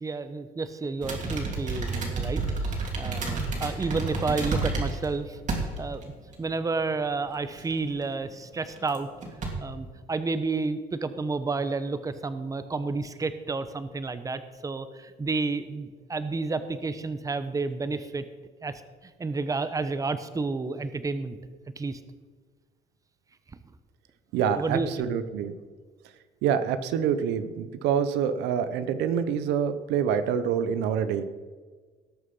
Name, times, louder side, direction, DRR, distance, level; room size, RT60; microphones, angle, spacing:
voice 1, 0.0-5.4 5.8-6.1 6.4-9.1 9.6-18.2 18.6-21.4 21.8-22.0 24.6-25.1, right 3 dB, 20° right, 12 dB, 0.9 m, -31 dB
sound 1, 1.0-5.1 5.5-6.0 6.3-6.4 7.6-8.0 8.8-9.0 9.2-9.5, right 3 dB, 45° right, 3.2 m, -30 dB
voice 2, 24.3-25.5 26.4-31.2, right 8 dB, 90° right, 11 dB, 0.9 m, -26 dB
18.5 x 6.7 x 5.5 m, 1.5 s
cardioid pair, 110°, 17 cm